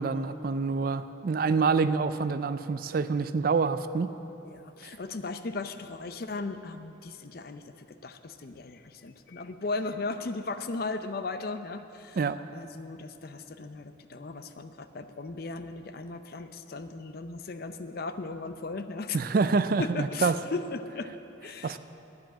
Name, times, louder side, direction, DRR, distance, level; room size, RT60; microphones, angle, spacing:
voice 1, 0.0-4.1 12.2-12.4 19.1-20.4 21.6-21.8, right 4 dB, 45° right, 13 dB, 0.3 m, -26 dB
voice 2, 4.4-12.2 12.5-19.2 19.8-21.1 21.4-21.8, left 3 dB, 50° left, 9 dB, 0.5 m, -37 dB
9.5 x 7.5 x 8.9 m, 2.9 s
head